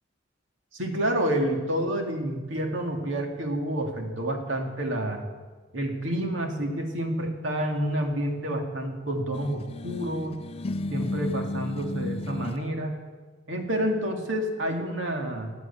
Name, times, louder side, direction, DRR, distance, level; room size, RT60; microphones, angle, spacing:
voice 1, 0.7-5.2 5.7-10.4 10.9-12.9 13.5-15.5, right 1 dB, 80° right, 2 dB, 2.3 m, -29 dB
sound 1, 9.3-12.6, left 2 dB, 30° left, 0.4 m, -33 dB
14.0 x 9.4 x 8.5 m, 1.4 s
head